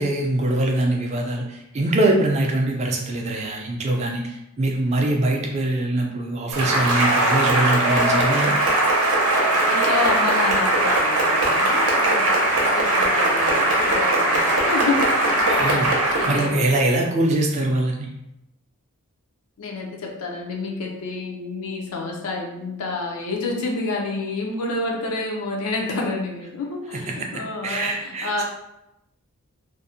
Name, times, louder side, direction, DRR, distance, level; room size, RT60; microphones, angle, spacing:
voice 1, 0.0-8.6 15.5-18.1 27.1-27.3 27.6-28.4, right 1 dB, 30° right, 1 dB, 0.3 m, -23 dB
Cheering / Applause, 6.5-16.6, right 1 dB, 85° right, 0.6 m, -20 dB
voice 2, 9.6-12.2 12.6-16.6 19.6-28.4, left 3 dB, 85° left, 0 dB, 0.5 m, -29 dB
2.5 x 2.0 x 2.6 m, 0.87 s
head